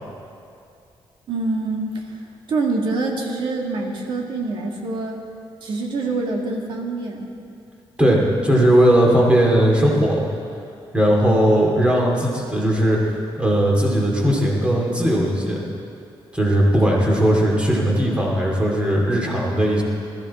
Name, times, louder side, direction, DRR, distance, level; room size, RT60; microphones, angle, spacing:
voice 1, 1.3-2.2 2.5-5.2 5.6-7.3 11.1-11.5, right 3 dB, 60° right, 1 dB, 1.9 m, -26 dB
voice 2, 8.0-10.2 10.9-13.0 13.4-15.6 16.3-19.8, right 1 dB, 10° right, -2 dB, 2.4 m, -18 dB
20.5 x 14.0 x 4.2 m, 2.5 s
wide cardioid pair, 180°, 9 cm